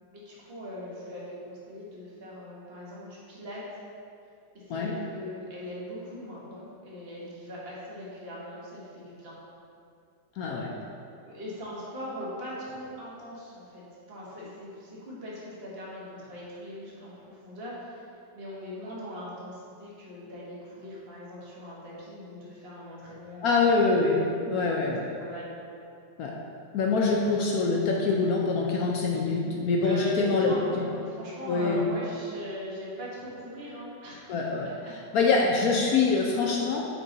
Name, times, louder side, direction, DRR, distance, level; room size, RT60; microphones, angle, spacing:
voice 1, 0.1-3.6 4.5-9.4 11.2-18.1 18.3-23.7 24.9-25.5 29.8-34.3 34.6-34.9, equal, 35° right, -6 dB, 1.4 m, -40 dB
voice 2, 10.4-10.7 23.4-24.2 24.5-25.1 26.2-26.3 26.7-30.9 31.5-31.8 34.3-36.8, left 4 dB, 70° left, -1 dB, 0.9 m, -25 dB
6.1 x 4.6 x 3.9 m, 2.5 s
omnidirectional pair, 1.9 m